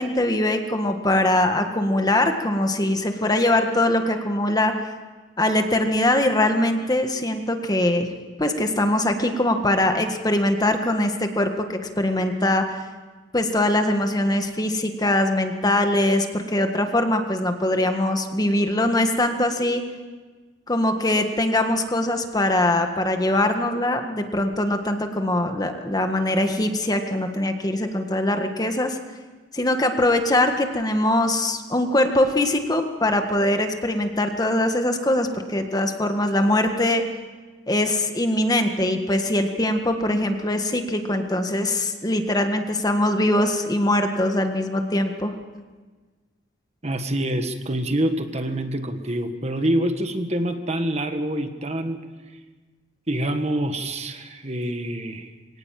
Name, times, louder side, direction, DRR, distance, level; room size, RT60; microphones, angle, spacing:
voice 1, 0.0-4.8 5.4-8.1 8.4-12.8 13.3-19.8 20.7-29.0 29.5-37.0 37.7-45.3, left 1 dB, 20° left, 5 dB, 1.7 m, -22 dB
voice 2, 46.8-52.0 53.1-55.3, right 1 dB, 35° right, 7 dB, 1.5 m, -26 dB
23.5 x 18.0 x 7.6 m, 1.3 s
head